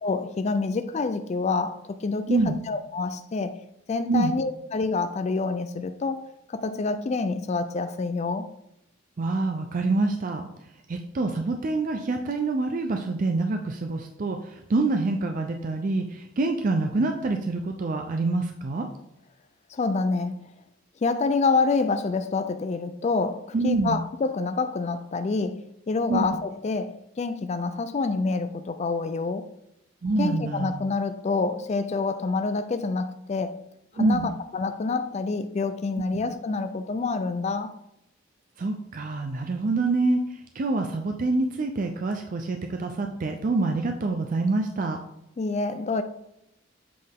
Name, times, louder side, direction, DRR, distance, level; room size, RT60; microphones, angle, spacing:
voice 1, 0.0-3.6 3.9-8.5 19.7-20.5 21.0-29.5 30.2-33.6 33.9-37.7 45.4-46.0, left 4 dB, 35° left, 0.3 m, -27 dB
voice 2, 2.3-2.6 4.1-4.3 9.2-10.5 10.9-18.9 23.5-24.0 26.1-26.3 30.0-30.8 34.0-34.3 36.1-36.2 38.6-45.0, right 3 dB, 40° right, 0.4 m, -26 dB
7.6 x 4.0 x 3.5 m
head